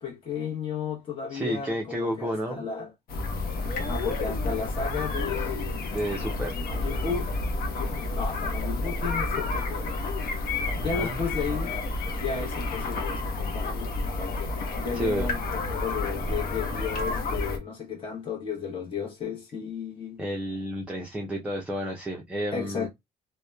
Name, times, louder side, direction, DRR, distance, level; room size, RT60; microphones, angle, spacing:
voice 1, 0.0-2.9 3.8-5.9 6.5-7.3 7.8-9.9 10.8-11.8 12.0-20.2 22.5-22.9, left 6 dB, 30° left, 0.9 m, -34 dB
voice 2, 1.3-2.6 5.9-6.6 10.8-11.2 14.9-15.3 20.2-22.9, equal, 5° right, 0.5 m, -31 dB
sound 1, 3.1-17.6, left 2 dB, 60° left, 0.8 m, -30 dB
2.8 x 2.1 x 2.2 m
cardioid pair, 110°, 17 cm